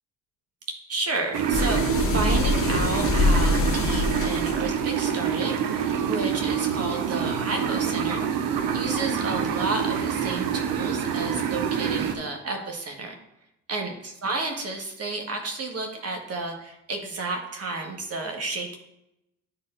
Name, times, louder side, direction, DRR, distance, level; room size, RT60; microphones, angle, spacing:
voice 1, 0.9-5.8 6.1-8.2 8.7-13.1 13.7-18.8, right 3 dB, 40° right, 3 dB, 1.5 m, -31 dB
sound 1, 1.3-12.1, right 7 dB, 65° right, 0.8 m, -26 dB
sound 2, 1.5-4.7, left 3 dB, 40° left, 0.7 m, -24 dB
9.9 x 4.2 x 2.5 m, 0.84 s
hypercardioid pair, 50°, 36 cm